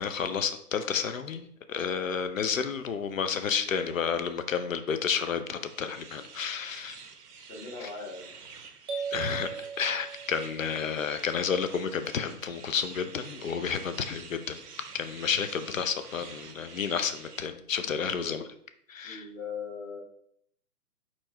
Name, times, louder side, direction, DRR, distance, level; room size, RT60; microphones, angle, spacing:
voice 1, 0.0-7.0 7.8-7.9 9.1-14.6 14.9-18.4 18.9-19.3, left 6 dB, 55° left, 9 dB, 0.6 m, -31 dB
sound 1, 5.6-17.5, right 5 dB, 75° right, 0.7 m, -48 dB
voice 2, 7.5-8.3 17.8-17.9 18.2-18.4 19.0-20.0, left 5 dB, 30° left, -2 dB, 1.2 m, -40 dB
sound 2, 8.9-10.8, right 6 dB, 30° right, 0.7 m, -37 dB
4.4 x 4.3 x 2.8 m, 0.68 s
figure-of-eight pair, 135°, 47 cm